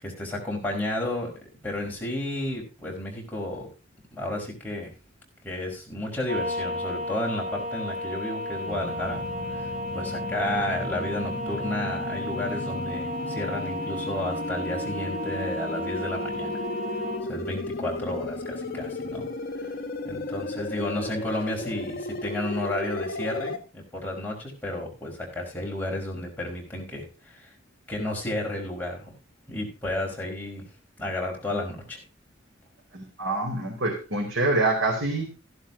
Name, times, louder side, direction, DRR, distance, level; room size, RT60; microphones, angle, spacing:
voice 1, 0.0-1.3 1.6-3.7 4.2-4.9 5.4-9.2 9.5-16.6 17.3-19.3 19.6-19.7 20.0-27.0 27.3-27.5 27.9-29.1 29.5-30.6 31.0-32.0, left 1 dB, 10° left, -2 dB, 5.0 m, -32 dB
sound 1, 6.3-17.2, left 1 dB, 45° right, 3.0 m, -33 dB
sound 2, 8.7-23.6, left 1 dB, 50° left, 1.3 m, -35 dB
voice 2, 32.9-35.3, right 2 dB, 90° right, -3 dB, 4.0 m, -26 dB
15.0 x 11.5 x 2.8 m, 0.31 s
head